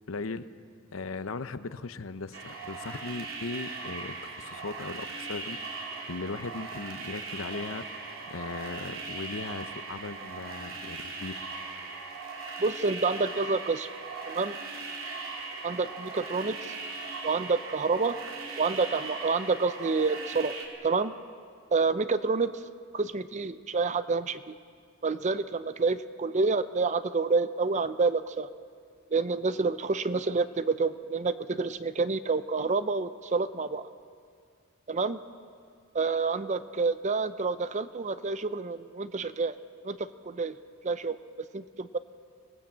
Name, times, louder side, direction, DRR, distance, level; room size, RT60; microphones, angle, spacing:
voice 1, 0.1-0.4 0.9-11.4, left 3 dB, 75° left, 12 dB, 0.8 m, -38 dB
sound 1, 2.3-20.7, right 4 dB, 75° right, 3.1 m, -39 dB
voice 2, 12.6-13.9 14.3-14.6 15.6-16.7 17.2-18.2 18.6-20.6 20.8-21.1 21.7-22.6 22.9-24.5 25.0-28.5 29.1-33.8 34.9-35.2 35.9-39.6 39.8-40.5 40.8-41.2 41.5-42.0, right 4 dB, 35° right, 13 dB, 0.6 m, -28 dB
25.5 x 18.0 x 7.4 m, 2.2 s
head